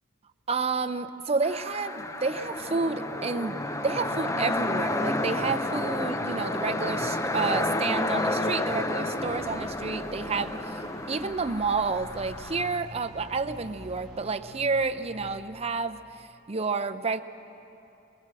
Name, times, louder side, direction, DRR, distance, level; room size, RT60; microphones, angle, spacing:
voice 1, 0.5-17.2, right 4 dB, 30° right, 9 dB, 0.6 m, -30 dB
sound 1, 1.4-12.8, left 2 dB, 15° left, 0.5 m, -31 dB
sound 2, 1.9-15.6, equal, ahead, 3.8 m, -45 dB
22.5 x 19.0 x 7.6 m, 2.9 s
head